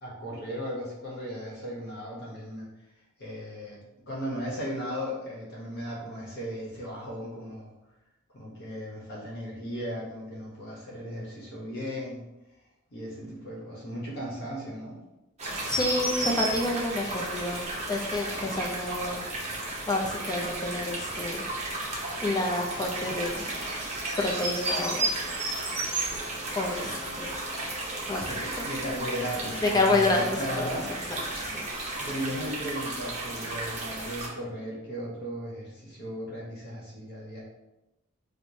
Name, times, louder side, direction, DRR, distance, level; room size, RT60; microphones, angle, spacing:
voice 1, 0.0-2.7 3.2-3.8 4.1-7.7 8.3-12.2 12.9-15.0 28.3-30.9 31.9-37.4, equal, 50° left, -5 dB, 0.9 m, -36 dB
sound 1, 15.4-34.3, right 2 dB, 30° right, 0.8 m, -33 dB
voice 2, 15.7-17.6 17.9-19.2 19.9-21.4 21.7-23.4 24.2-25.1 26.5-27.4 28.1-28.3 29.6-30.2 30.6-30.7 31.1-31.5, left 2 dB, 20° left, 0 dB, 0.5 m, -29 dB
4.7 x 2.1 x 2.7 m, 0.96 s
head